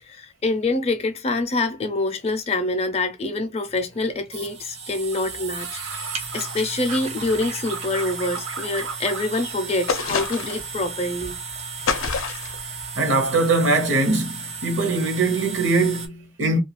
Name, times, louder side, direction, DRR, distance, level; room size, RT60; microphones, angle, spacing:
voice 1, 0.1-11.4, left 2 dB, 30° left, 0.5 m, -26 dB
sound 1, 3.7-16.1, right 5 dB, 30° right, 0.5 m, -35 dB
sound 2, 5.1-6.6 6.8-9.5 9.8-10.6 10.9-11.3, right 4 dB, 90° right, 1.1 m, -36 dB
sound 3, 9.9-10.7 11.9-12.6, left 5 dB, 80° left, 0.5 m, -26 dB
voice 2, 13.0-16.6, right 3 dB, 65° right, 0.9 m, -21 dB
2.4 x 2.2 x 2.9 m
head